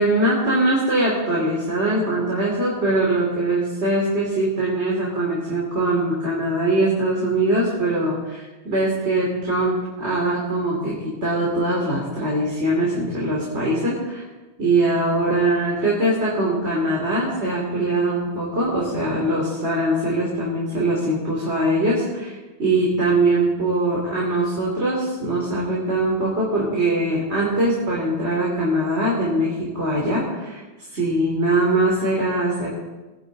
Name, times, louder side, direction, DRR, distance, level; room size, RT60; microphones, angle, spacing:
voice 1, 0.0-14.2 14.6-30.6 30.9-32.7, right 1 dB, 85° right, -5 dB, 3.3 m, -22 dB
20.5 x 10.5 x 4.0 m, 1.1 s
omnidirectional pair, 1.1 m